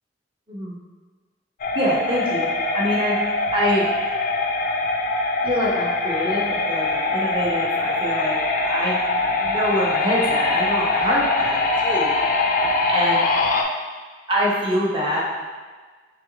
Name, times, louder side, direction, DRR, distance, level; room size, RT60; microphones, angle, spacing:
sound 1, 1.6-13.6, left 3 dB, 50° left, 0.4 m, -23 dB
voice 1, 1.7-3.2 3.5-3.8 5.4-9.1 9.4-12.1 12.9-13.2 14.3-15.2, equal, 30° right, -5 dB, 1.0 m, -25 dB
3.5 x 2.9 x 3.9 m, 1.4 s
head